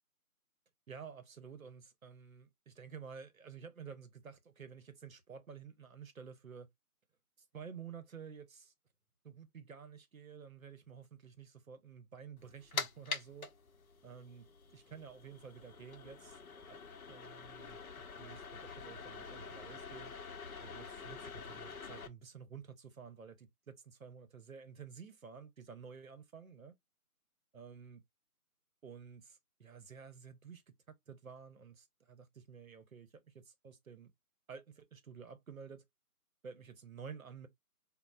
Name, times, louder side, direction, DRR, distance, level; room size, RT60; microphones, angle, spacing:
voice 1, 0.9-6.7 7.5-8.7 9.2-13.5 14.0-14.4 14.7-16.8 17.1-17.8 18.2-20.1 20.6-26.7 27.5-28.0 28.8-34.1 34.5-35.8 36.4-37.5, right 6 dB, 60° right, 0.7 m, -51 dB
sound 1, 12.4-22.1, left 5 dB, 65° left, 0.6 m, -46 dB
4.1 x 2.0 x 2.3 m
figure-of-eight pair, 170°, 46 cm